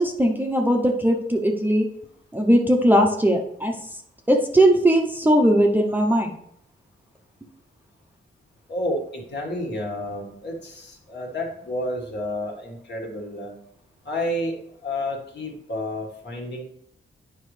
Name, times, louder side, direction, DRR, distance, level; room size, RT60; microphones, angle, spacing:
voice 1, 0.0-1.9 2.3-4.0 4.3-6.4, right 1 dB, 10° right, 2 dB, 0.7 m, -19 dB
voice 2, 8.7-13.5 14.0-16.6, left 1 dB, 55° left, 0 dB, 1.7 m, -30 dB
9.3 x 5.2 x 3.2 m, 0.70 s
wide cardioid pair, 135°, 21 cm